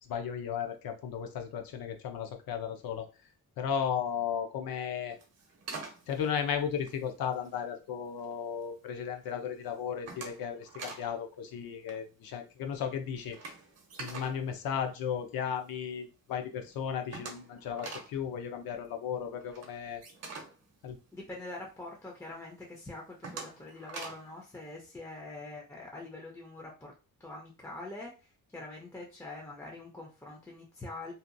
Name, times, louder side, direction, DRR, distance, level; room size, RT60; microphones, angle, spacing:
voice 1, 0.0-3.1 3.6-5.1 6.1-13.4 14.0-20.0 20.8-21.0, left 7 dB, 80° left, 6 dB, 0.6 m, -35 dB
sound 1, 5.1-7.6 8.1-8.6 9.0-9.4 9.7-11.1 11.4-11.5 11.8-15.6 15.9-16.0 16.3-16.4 16.6-21.7 22.1-22.2 22.7-24.4, right 4 dB, 45° right, 0.6 m, -45 dB
voice 2, 21.1-26.9 27.2-31.1, left 2 dB, 10° left, -2 dB, 0.4 m, -44 dB
2.7 x 2.2 x 2.5 m, 0.32 s
wide cardioid pair, 175°, 35 cm